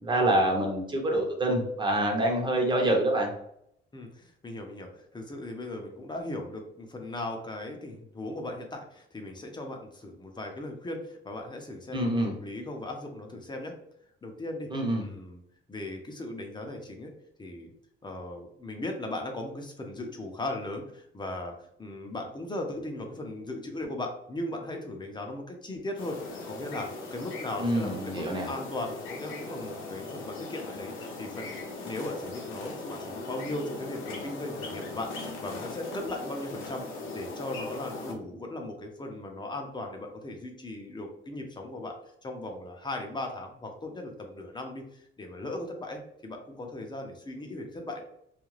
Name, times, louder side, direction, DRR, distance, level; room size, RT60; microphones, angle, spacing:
voice 1, 0.0-3.3 11.9-12.3 14.7-15.1 27.6-28.5, right 1 dB, 25° right, 1 dB, 0.8 m, -26 dB
voice 2, 3.9-13.8 14.2-14.7 15.0-15.4 15.7-17.1 17.4-17.7 18.0-26.2 26.5-31.6 31.8-42.0 42.2-48.0, left 1 dB, 20° left, 3 dB, 0.6 m, -38 dB
sound 1, 26.0-38.1, left 3 dB, 85° left, 0.7 m, -39 dB
2.4 x 2.3 x 3.1 m, 0.72 s
cardioid pair, 90°, 20 cm